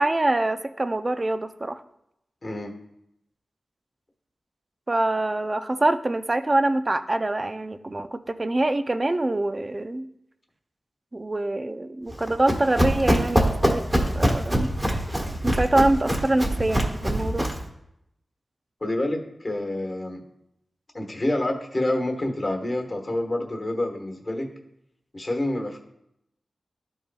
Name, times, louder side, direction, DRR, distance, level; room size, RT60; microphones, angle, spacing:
voice 1, 0.0-1.8 4.9-10.1 11.1-14.7 15.4-17.5, right 2 dB, 30° right, 10 dB, 0.4 m, -25 dB
voice 2, 2.4-2.7 18.8-20.2 20.9-24.5 25.1-25.8, left 1 dB, 35° left, 3 dB, 1.3 m, -27 dB
Run, 12.1-17.7, equal, 15° right, 1.4 m, -24 dB
12.5 x 5.3 x 2.3 m, 0.79 s
wide cardioid pair, 80°, 0 cm